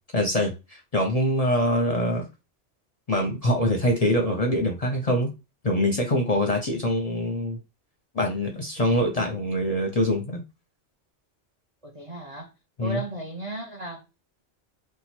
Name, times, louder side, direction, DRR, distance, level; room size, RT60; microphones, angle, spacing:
voice 1, 0.1-2.2 3.1-5.3 5.6-7.6 8.1-10.4 12.8-13.0, equal, 40° left, 0.7 m, -24 dB
voice 2, 11.8-12.5 12.8-14.1, right 2 dB, 35° right, 0.7 m, -35 dB
3.0 x 2.2 x 4.2 m
omnidirectional pair, 1.2 m